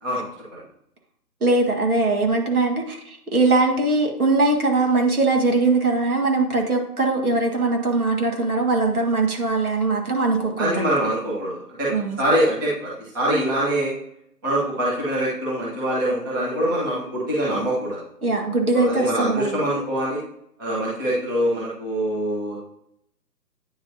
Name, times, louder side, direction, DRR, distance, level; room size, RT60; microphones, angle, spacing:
voice 1, 1.4-10.9 11.9-12.2 18.2-19.6, right 3 dB, 65° right, 1 dB, 1.7 m, -21 dB
voice 2, 10.6-11.9 12.2-13.9 14.4-18.0 18.7-20.2 20.6-22.6, right 1 dB, 15° right, -7 dB, 1.1 m, -24 dB
9.6 x 4.2 x 2.7 m, 0.73 s
figure-of-eight pair, 145°, 48 cm